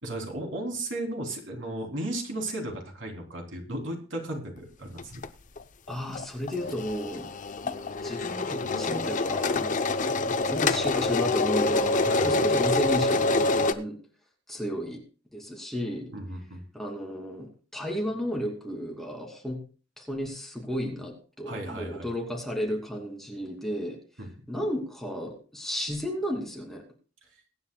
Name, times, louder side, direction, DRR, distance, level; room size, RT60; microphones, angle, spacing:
voice 1, 0.0-5.2 12.1-12.4 16.1-16.6 21.4-22.1 24.2-24.3, right 1 dB, 75° right, 1 dB, 3.2 m, -35 dB
sound 1, 5.0-5.3 5.6-5.7 5.9-13.7, left 3 dB, 40° left, 0.7 m, -26 dB
voice 2, 5.9-7.3 7.6-7.7 8.0-14.0 14.5-15.0 15.3-16.1 16.7-19.6 20.0-24.0 24.5-26.8, equal, ahead, 0 dB, 2.6 m, -33 dB
22.5 x 9.5 x 2.3 m, 0.38 s
head